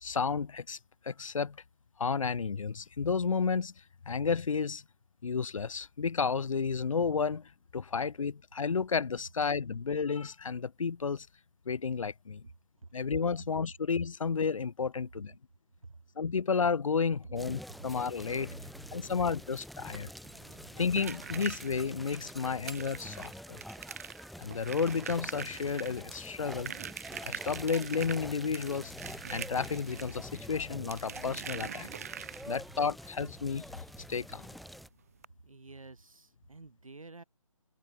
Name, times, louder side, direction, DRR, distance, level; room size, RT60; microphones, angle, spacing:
voice 1, 0.0-0.8 1.0-1.6 2.0-3.7 4.1-4.8 5.2-11.3 11.7-12.4 12.9-15.4 16.2-18.5 18.9-20.1 20.8-23.6 24.4-26.7 27.2-28.9 29.3-31.9 32.5-33.7 34.1-34.5, left 5 dB, 70° left, 0.6 m, -32 dB
sound 1, 17.4-34.9, equal, ahead, 2.3 m, -47 dB
voice 2, 18.5-19.0 20.6-20.7 32.4-32.5 35.4-37.2, right 3 dB, 70° right, 7.4 m, -49 dB
sound 2, 20.2-32.8 34.2-34.3 34.6-34.7 35.2-35.3, right 8 dB, 25° right, 0.7 m, -44 dB
figure-of-eight pair, 160°, 18 cm